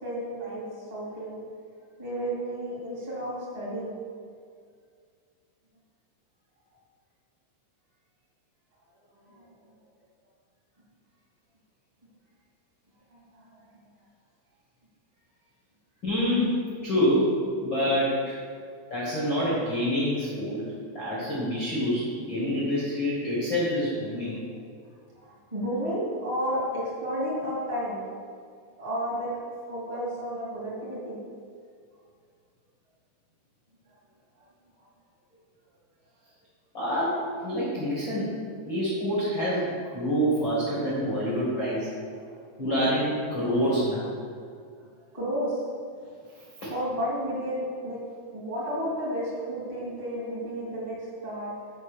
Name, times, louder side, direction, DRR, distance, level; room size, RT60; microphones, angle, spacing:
voice 1, 0.0-1.4 2.0-4.0 9.2-9.7 13.1-13.7 25.1-28.1 28.8-29.3 29.7-31.2 42.2-42.6 45.1-45.9 46.7-48.0 48.3-51.5, equal, 35° right, -7 dB, 0.6 m, -32 dB
voice 2, 16.0-18.4 18.9-20.6 20.9-24.4 36.7-38.3 38.7-41.9 42.6-44.1 46.6-46.7, equal, 80° left, -8 dB, 1.0 m, -27 dB
8.4 x 5.1 x 6.8 m, 2.1 s
omnidirectional pair, 5.7 m